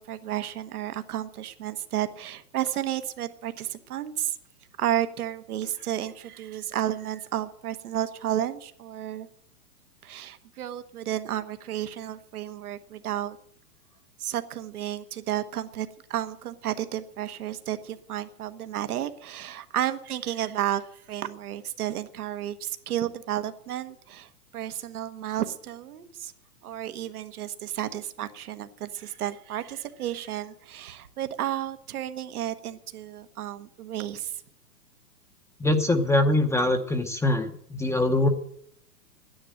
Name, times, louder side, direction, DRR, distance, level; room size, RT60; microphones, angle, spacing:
voice 1, 0.0-4.4 4.8-9.3 10.0-13.4 14.2-26.3 26.6-34.4, right 11 dB, 70° right, 10 dB, 1.3 m, -32 dB
voice 2, 35.6-38.3, left 1 dB, 5° left, 6 dB, 0.8 m, -23 dB
12.5 x 10.5 x 7.7 m, 0.66 s
hypercardioid pair, 125°, 46 cm